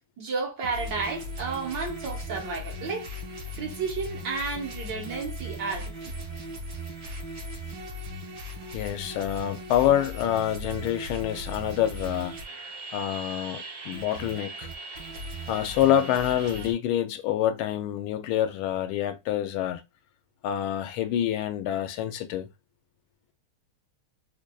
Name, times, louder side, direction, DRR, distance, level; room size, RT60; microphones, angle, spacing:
voice 1, 0.2-3.1 3.6-5.9, right 4 dB, 60° right, 1.7 m, -32 dB
sound 1, 0.7-16.7, equal, 80° right, 2.2 m, -38 dB
voice 2, 8.7-12.4 12.9-14.7 15.5-19.8 20.4-22.5, left 11 dB, 80° left, 1.4 m, -27 dB
5.0 x 2.5 x 2.3 m
omnidirectional pair, 2.3 m